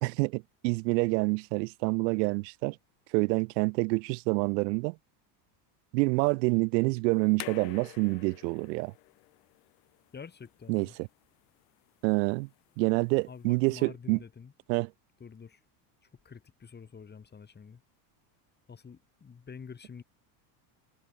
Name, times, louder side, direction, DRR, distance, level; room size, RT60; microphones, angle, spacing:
voice 1, 0.0-2.8 3.1-5.0 5.9-8.9 10.7-11.1 12.0-12.5 12.8-14.2 14.7-14.9, right 28 dB, 85° right, 0.8 m, -27 dB
sound 1, 7.1-13.8, left 29 dB, 80° left, 5.4 m, -50 dB
voice 2, 10.1-11.0 13.3-14.5 15.2-15.6 16.2-17.8 18.7-20.0, left 6 dB, 20° left, 2.9 m, -47 dB
supercardioid pair, 130°, 49 cm